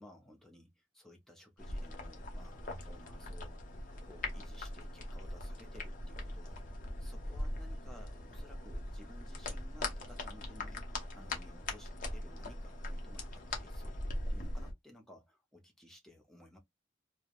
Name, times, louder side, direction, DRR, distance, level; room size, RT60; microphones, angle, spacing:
voice 1, 0.0-6.7 7.0-14.0 14.3-16.6, left 1 dB, ahead, 0.6 m, -57 dB
sound 1, 1.6-14.7, left 1 dB, 40° left, 0.7 m, -41 dB
3.1 x 2.1 x 2.3 m
head